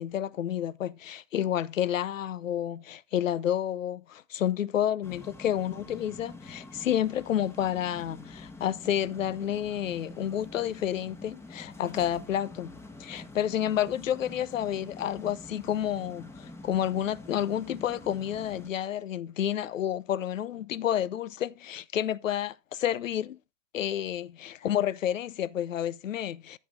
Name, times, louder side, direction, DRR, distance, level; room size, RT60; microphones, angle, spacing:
voice 1, 0.0-23.4 23.7-26.6, left 10 dB, 90° left, 0.8 m, -30 dB
sound 1, 5.0-18.7, left 2 dB, 5° left, 1.1 m, -46 dB
13.5 x 6.3 x 3.7 m
hypercardioid pair, 135°, 38 cm